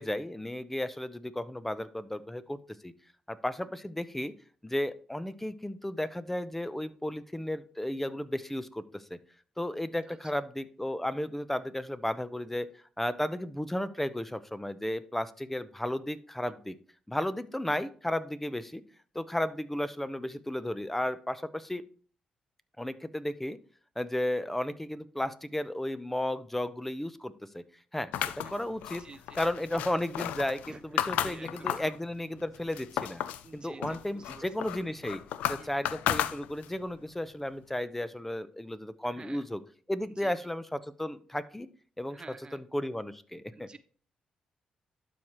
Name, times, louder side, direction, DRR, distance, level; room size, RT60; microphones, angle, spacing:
voice 1, 0.0-2.9 3.3-4.3 4.6-9.2 9.6-12.7 13.0-16.8 17.1-18.8 19.1-21.8 22.8-23.6 24.0-27.6 27.9-28.1 28.4-29.0 29.4-33.2 33.5-39.6 39.9-41.7 42.0-42.2 42.5-43.7, left 1 dB, 10° left, 14 dB, 0.7 m, -34 dB
voice 2, 10.1-10.4 28.1-28.6 29.0-29.4 30.7-31.9 33.4-34.5 35.6-35.8 39.0-39.4 40.2-40.3 42.1-42.6 43.5-43.8, right 4 dB, 35° right, 14 dB, 0.4 m, -51 dB
sound 1, 28.1-32.0 32.4-33.5 33.8-36.8, left 11 dB, 90° left, 0.4 m, -33 dB
12.0 x 4.8 x 3.0 m, 0.43 s
supercardioid pair, 65°, 2 cm